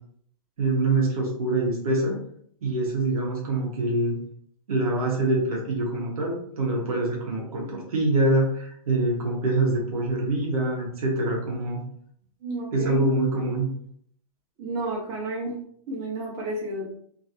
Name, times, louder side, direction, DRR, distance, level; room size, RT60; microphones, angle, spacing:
voice 1, 0.6-2.2 2.6-4.1 4.7-11.8 12.7-13.7, right 2 dB, 80° right, -2 dB, 1.2 m, -25 dB
voice 2, 12.4-13.0 14.6-15.5 15.9-16.8, right 1 dB, 40° right, -4 dB, 1.3 m, -31 dB
3.0 x 2.8 x 2.6 m, 0.63 s
hypercardioid pair, 150°, 18 cm